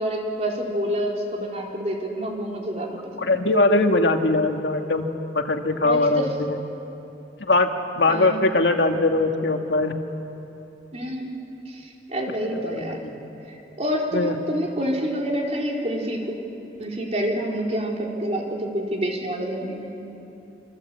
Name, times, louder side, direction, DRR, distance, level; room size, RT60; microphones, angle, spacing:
voice 1, 0.0-3.4 5.8-6.3 8.1-8.4 10.9-11.3 11.7-11.8 12.1-13.0 13.8-16.3 16.8-19.9, equal, 35° right, -1 dB, 3.8 m, -27 dB
voice 2, 3.2-5.0 5.3-6.6 7.4-10.0 12.5-13.2 14.1-14.4, left 2 dB, 80° left, 5 dB, 1.8 m, -21 dB
26.5 x 25.5 x 8.5 m, 3.0 s
head